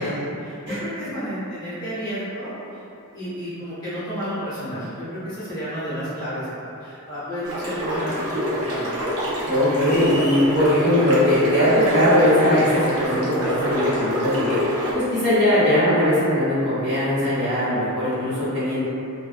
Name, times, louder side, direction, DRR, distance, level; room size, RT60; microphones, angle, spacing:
voice 1, 0.0-2.8 3.1-8.9, equal, 20° left, -13 dB, 0.7 m, -31 dB
sound 1, 7.4-14.9, equal, 70° right, 0.6 m, -26 dB
voice 2, 9.4-14.6 14.9-18.9, left 1 dB, 50° right, -12 dB, 1.2 m, -20 dB
sound 2, 9.8-10.6, equal, 50° left, 0.4 m, -34 dB
2.4 x 2.2 x 2.4 m, 2.7 s
head